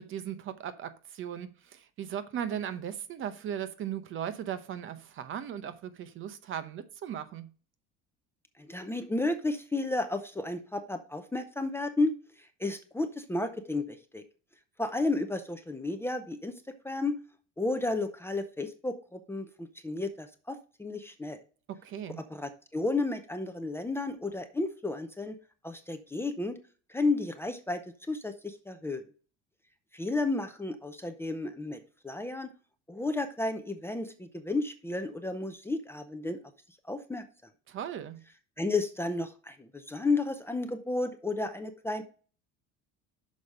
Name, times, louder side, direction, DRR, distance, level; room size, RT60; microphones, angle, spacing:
voice 1, 0.0-7.5 21.7-22.2 37.7-38.2, right 9 dB, 45° right, 0.8 m, -37 dB
voice 2, 8.6-14.2 14.8-17.2 17.6-21.4 22.3-25.4 25.6-26.6 26.9-27.8 28.1-29.0 29.9-32.5 32.9-36.4 36.9-37.2 38.6-42.0, left 2 dB, 10° left, 0.6 m, -32 dB
6.4 x 5.0 x 5.4 m
cardioid pair, 135°, 30 cm